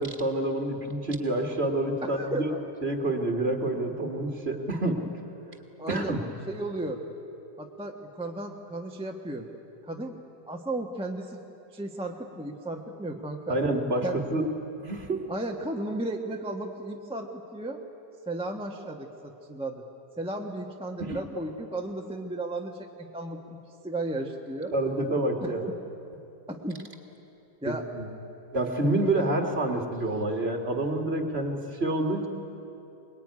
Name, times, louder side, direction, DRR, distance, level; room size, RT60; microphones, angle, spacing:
voice 1, 0.0-2.5 2.8-5.1 5.9-6.2 13.5-14.5 14.8-15.2 21.0-21.2 24.7-25.7 27.6-28.1 28.5-32.3, right 1 dB, 35° right, 3 dB, 2.1 m, -28 dB
voice 2, 2.0-2.6 5.8-6.2 6.5-7.0 7.6-9.5 9.9-10.1 10.5-11.4 11.7-13.6 14.0-14.2 15.3-17.8 18.3-19.9 20.2-24.7 25.4-25.7 26.5-26.8 27.6-27.8, right 2 dB, 5° right, 1 dB, 1.1 m, -34 dB
23.5 x 21.0 x 9.6 m, 2.9 s
omnidirectional pair, 1.9 m